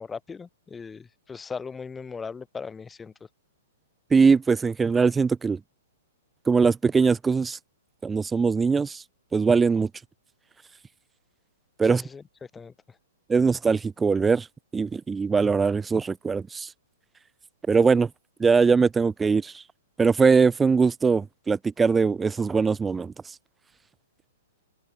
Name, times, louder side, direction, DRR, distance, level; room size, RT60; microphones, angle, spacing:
voice 1, 0.0-3.1 11.8-12.2 12.5-12.7, left 5 dB, 15° left, 3.0 m, -38 dB
voice 2, 4.1-5.6 6.5-7.6 8.0-9.0 9.3-9.9 11.8-12.0 13.3-14.5 14.7-16.7 17.7-18.1 18.4-19.5 20.0-23.1, right 5 dB, 10° right, 3.7 m, -21 dB
hypercardioid pair, 120°, 0 cm